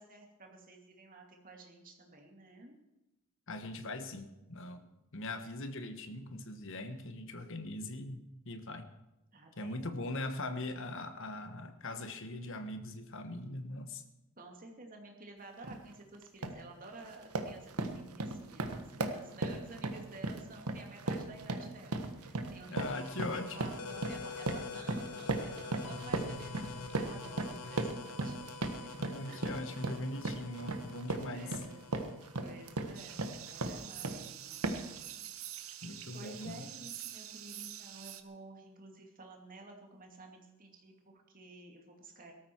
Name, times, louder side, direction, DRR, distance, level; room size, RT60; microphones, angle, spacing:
voice 1, 0.0-2.8 9.3-10.0 14.4-28.4 28.6-28.9 29.3-29.6 31.3-31.9 32.4-34.6 36.1-42.3, right 2 dB, 40° right, 2 dB, 2.6 m, -52 dB
voice 2, 3.5-4.9 5.1-8.2 8.4-8.9 9.6-14.0 22.7-23.7 29.0-31.6 35.8-36.7, left 2 dB, 60° left, 8 dB, 1.4 m, -41 dB
sound 1, 15.6-15.8 16.2-16.6 17.0-34.3 34.6-35.0, right 2 dB, 85° right, 1.4 m, -37 dB
sound 2, 22.8-34.1, left 5 dB, 90° left, 1.0 m, -47 dB
sound 3, 32.9-38.2, right 12 dB, 65° right, 1.1 m, -46 dB
17.5 x 13.5 x 4.6 m, 0.96 s
head